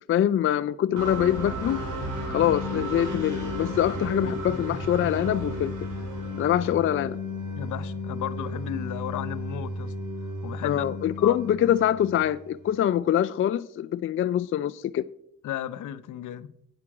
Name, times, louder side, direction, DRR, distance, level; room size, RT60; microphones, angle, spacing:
voice 1, 0.1-1.8 2.3-5.7 6.4-7.2 10.6-15.0, left 11 dB, 40° left, 0.4 m, -24 dB
sound 1, 1.0-12.7, left 1 dB, 65° right, 3.9 m, -33 dB
voice 2, 7.6-9.9 10.4-10.8 11.2-11.4 15.4-16.5, left 11 dB, 65° left, 0.7 m, -34 dB
8.8 x 8.2 x 4.9 m
cardioid pair, 85°, 33 cm